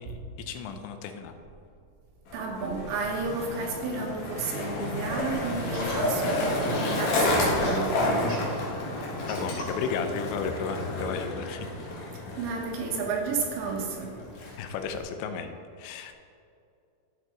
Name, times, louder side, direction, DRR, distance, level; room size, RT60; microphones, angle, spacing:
voice 1, 0.0-1.3 9.3-11.7 14.6-15.5 15.8-16.1, left 6 dB, 80° left, 7 dB, 2.9 m, -34 dB
Skateboard, 2.3-15.0, left 2 dB, 55° left, 2.1 m, -31 dB
voice 2, 2.3-8.3 12.4-14.2, right 4 dB, 80° right, 0 dB, 3.6 m, -32 dB
Laughter, 4.7-5.2 5.6-9.9, equal, 30° left, 2.0 m, -33 dB
12.5 x 7.7 x 3.8 m, 2.5 s
omnidirectional pair, 5.2 m